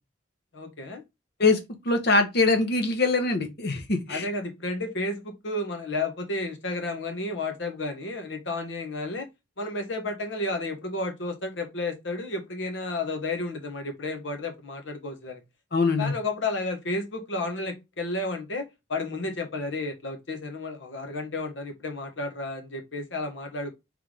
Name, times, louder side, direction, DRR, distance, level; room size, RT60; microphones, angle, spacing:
voice 1, 0.5-1.0 4.1-9.3 9.6-15.4 16.0-23.7, left 2 dB, 75° left, 1.1 m, -32 dB
voice 2, 1.8-4.3 15.7-16.1, left 3 dB, 55° left, 0.9 m, -23 dB
3.7 x 3.4 x 3.2 m
head